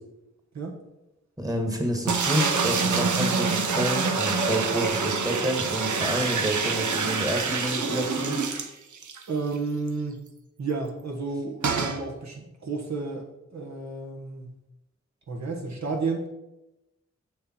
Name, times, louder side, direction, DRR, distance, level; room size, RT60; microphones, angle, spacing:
voice 1, 1.4-8.4, right 1 dB, 10° right, 2 dB, 1.4 m, -29 dB
sound 1, 2.1-9.2 9.6-9.7 9.9-10.0 11.6-12.0, right 4 dB, 85° right, 0.8 m, -26 dB
voice 2, 9.3-10.2 10.6-13.3 13.5-14.5 15.3-16.2, right 4 dB, 70° right, 0 dB, 1.2 m, -31 dB
6.7 x 6.6 x 4.3 m, 0.95 s
wide cardioid pair, 105°, 29 cm